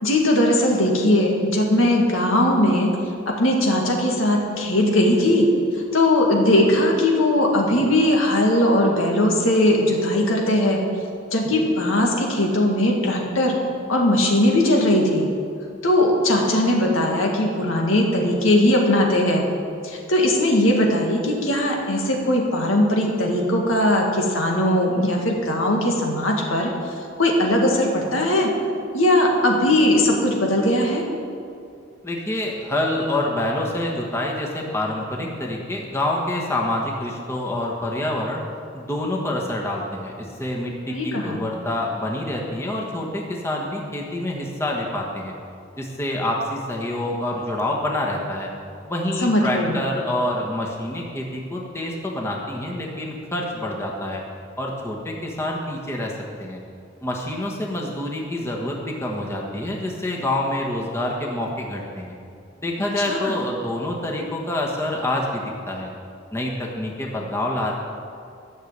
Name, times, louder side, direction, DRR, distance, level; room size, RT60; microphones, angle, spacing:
voice 1, 0.0-2.9 3.3-5.5 5.7-10.8 11.3-13.6 13.9-15.3 15.8-19.4 19.8-26.7 27.2-28.5 28.9-31.0 40.9-41.4 49.2-49.8 63.1-63.3, left 1 dB, 90° left, 0 dB, 2.1 m, -19 dB
voice 2, 32.0-38.4 38.7-45.3 45.8-48.5 48.8-54.2 54.6-56.1 56.4-56.6 57.0-62.2 62.6-65.9 66.3-67.7, left 1 dB, 15° left, -2 dB, 1.4 m, -27 dB
13.0 x 6.6 x 8.1 m, 2.4 s
head